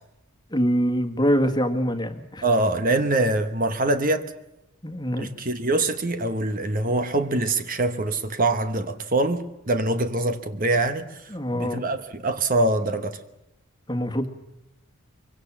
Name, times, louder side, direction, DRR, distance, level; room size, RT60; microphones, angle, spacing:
voice 1, 0.5-2.4 4.8-5.3 11.3-11.8 13.9-14.3, equal, 20° left, 1.7 m, -24 dB
voice 2, 2.4-4.3 5.2-13.2, right 2 dB, 40° right, 1.2 m, -24 dB
24.0 x 23.5 x 7.4 m
head